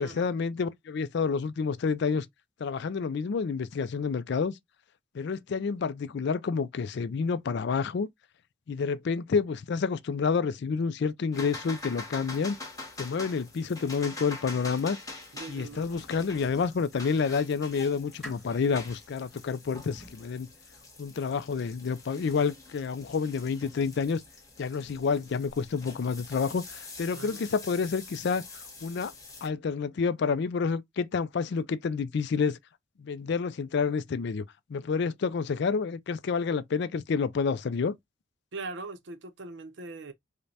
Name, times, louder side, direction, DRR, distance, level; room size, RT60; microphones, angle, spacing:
voice 1, 0.0-2.3 2.6-4.5 5.1-8.1 8.7-12.6 13.0-15.0 15.5-20.5 21.0-24.2 24.6-28.4 28.8-29.1 29.4-32.6 33.0-34.4 34.7-38.0, left 5 dB, 60° left, 0.4 m, -29 dB
sound 1, 11.3-29.5, left 3 dB, 15° left, 1.1 m, -45 dB
voice 2, 15.3-16.0 27.1-27.4 38.5-40.1, right 3 dB, 60° right, 0.6 m, -41 dB
sound 2, 15.7-17.2 17.7-20.4, left 1 dB, ahead, 1.7 m, -50 dB
4.9 x 2.1 x 2.7 m
head